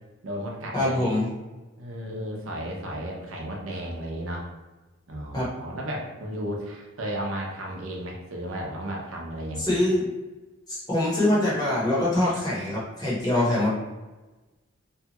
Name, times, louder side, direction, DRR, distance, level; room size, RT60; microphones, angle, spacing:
voice 1, 0.2-1.1 1.8-4.4 5.1-9.9, equal, 80° right, -1 dB, 0.7 m, -34 dB
voice 2, 0.7-1.3 5.3-5.5 9.6-10.1 10.7-13.7, left 1 dB, 20° left, -7 dB, 0.9 m, -24 dB
2.7 x 2.3 x 2.8 m, 1.2 s
head